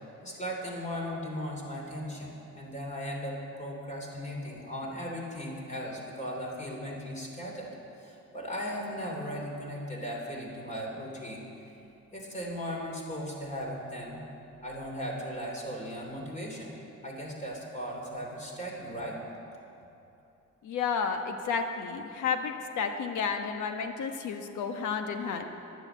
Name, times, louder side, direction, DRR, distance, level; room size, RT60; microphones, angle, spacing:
voice 1, 0.2-7.7 8.0-11.5 12.1-14.2 14.6-16.7 17.0-19.2, equal, 25° left, -1 dB, 3.3 m, -37 dB
voice 2, 20.6-25.5, left 6 dB, 75° left, 5 dB, 1.2 m, -31 dB
10.5 x 9.8 x 8.0 m, 2.8 s
cardioid pair, 90°, 30 cm